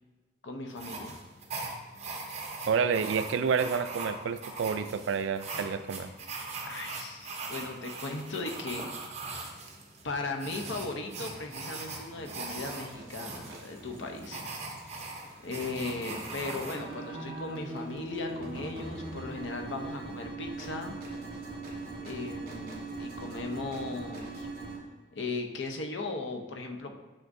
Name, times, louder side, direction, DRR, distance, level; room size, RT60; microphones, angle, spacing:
voice 1, 0.4-1.2 6.7-8.9 9.2-9.4 10.0-14.5 14.9-20.9 22.0-24.5 25.1-27.0, left 3 dB, 65° left, 3 dB, 0.8 m, -37 dB
sound 1, 0.7-16.8, right 3 dB, 35° right, 0.8 m, -41 dB
voice 2, 2.7-6.1, right 6 dB, 70° right, 11 dB, 0.3 m, -29 dB
sound 2, 12.1-24.8, right 2 dB, 50° right, 1.4 m, -41 dB
6.5 x 6.1 x 2.6 m, 1.3 s
head